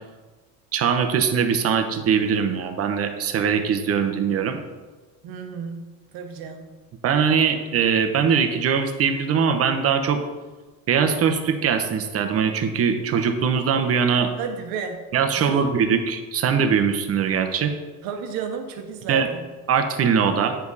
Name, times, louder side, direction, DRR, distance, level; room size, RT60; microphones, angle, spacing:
voice 1, 0.7-4.6 7.0-10.2 10.9-14.3 15.1-17.7 19.1-19.3 19.7-20.6, right 6 dB, 40° right, 6 dB, 0.9 m, -21 dB
voice 2, 5.2-6.8 14.4-15.1 15.3-15.7 18.0-19.5, right 6 dB, 75° right, 5 dB, 1.2 m, -33 dB
9.0 x 5.1 x 4.1 m, 1.3 s
cardioid pair, 125°, 36 cm